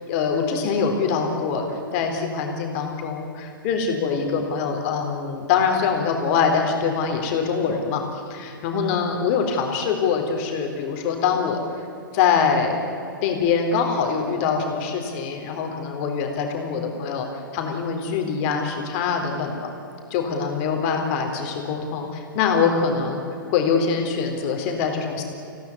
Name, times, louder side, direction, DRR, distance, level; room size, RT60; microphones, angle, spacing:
voice 1, 0.1-8.2 8.6-11.8 12.1-12.8 13.2-19.7 20.1-23.2 23.5-25.2, left 6 dB, 40° left, 3 dB, 3.9 m, -24 dB
26.5 x 17.0 x 9.7 m, 2.7 s
figure-of-eight pair, 110°, 11 cm